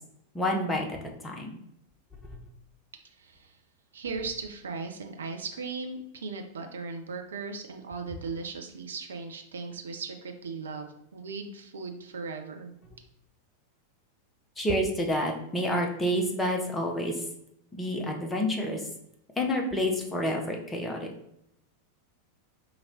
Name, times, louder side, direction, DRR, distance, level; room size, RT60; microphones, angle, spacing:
voice 1, 0.3-1.0 1.2-1.5 14.6-17.2 17.7-18.8 19.4-21.1, equal, 10° left, 1 dB, 0.8 m, -28 dB
voice 2, 3.1-3.6 3.9-12.7, right 4 dB, 65° right, 5 dB, 0.5 m, -38 dB
4.9 x 2.9 x 2.7 m, 0.75 s
figure-of-eight pair, 90°, 0 cm